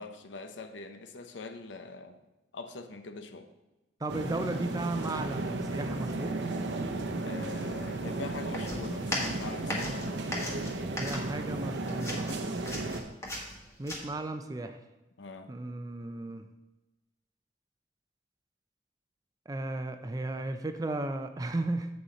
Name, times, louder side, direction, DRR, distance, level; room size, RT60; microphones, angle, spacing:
voice 1, 0.0-2.2 2.5-3.5 7.2-10.0 15.2-15.5, left 4 dB, 90° left, 8 dB, 0.8 m, -43 dB
voice 2, 4.0-6.4 11.0-12.5 13.8-14.8 15.5-16.5 19.5-21.9, right 2 dB, 20° right, 7 dB, 0.4 m, -35 dB
sound 1, 4.1-13.0, right 2 dB, 75° right, 0.8 m, -34 dB
sound 2, 8.5-11.6 11.9-14.0, left 1 dB, 15° left, 1.5 m, -37 dB
7.8 x 6.4 x 4.2 m, 1.1 s
head